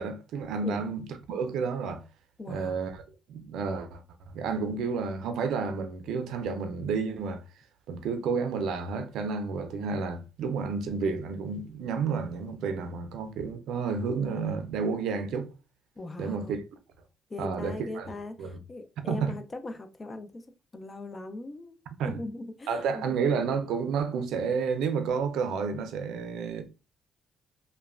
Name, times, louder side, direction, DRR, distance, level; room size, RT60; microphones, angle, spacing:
voice 1, 0.0-2.0 2.5-3.0 3.3-4.0 4.3-7.4 7.9-15.5 16.2-16.6 17.4-18.1 18.4-18.6 19.1-19.3 22.0-22.2 22.7-26.6, right 5 dB, 80° right, 0.4 m, -30 dB
voice 2, 2.4-2.8 16.0-16.6 17.3-20.4 20.7-21.8 22.0-23.4, left 2 dB, 30° left, 0.4 m, -40 dB
3.0 x 2.1 x 2.3 m
cardioid pair, 90°, 0 cm